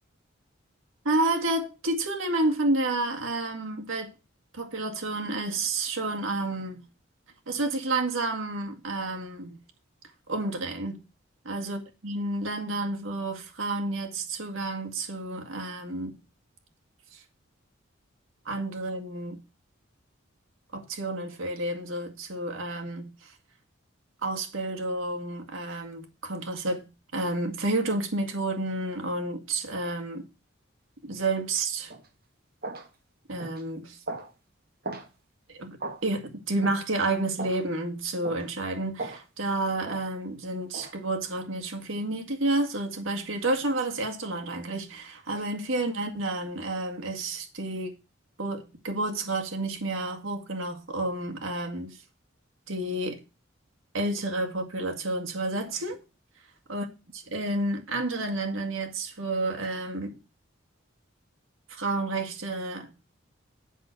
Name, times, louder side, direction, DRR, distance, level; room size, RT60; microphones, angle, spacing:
voice 1, 1.0-4.1 4.5-6.9 7.5-9.6 10.3-11.0 11.4-16.2 17.1-17.2 18.5-19.4 20.7-23.3 24.2-30.2 31.0-31.9 33.3-34.0 35.5-47.9 48.4-52.0 52.7-53.2 53.9-56.0 56.7-56.9 57.1-60.2 61.7-62.9, right 2 dB, 80° right, 2.0 m, -30 dB
sound 1, 31.9-32.1 32.6-32.9 33.4-33.6 34.1-34.3 34.8-35.1 35.8-36.0 36.6-36.8 37.4-37.6 38.2-38.5 39.0-39.2 39.8-40.0 40.7-40.9, right 2 dB, 50° right, 1.9 m, -37 dB
7.8 x 6.1 x 6.5 m
head